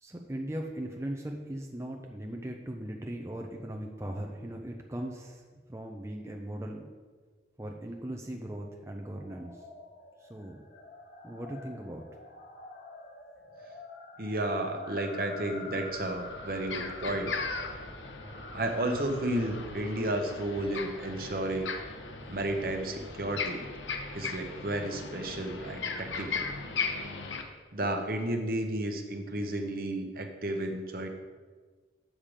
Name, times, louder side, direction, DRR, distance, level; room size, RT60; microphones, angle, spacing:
voice 1, 0.0-5.4 5.7-6.9 7.6-9.7 10.2-10.6 11.2-12.1, right 1 dB, 15° right, 1 dB, 0.5 m, -39 dB
sound 1, 9.1-21.5, left 2 dB, 50° left, 1.0 m, -47 dB
voice 2, 14.2-17.3 18.5-21.7 22.3-23.7 24.1-26.5 27.7-31.1, right 1 dB, 50° right, 4 dB, 0.9 m, -32 dB
sound 2, 15.8-27.4, left 4 dB, 90° left, 0.9 m, -38 dB
7.4 x 6.9 x 5.0 m, 1.5 s
head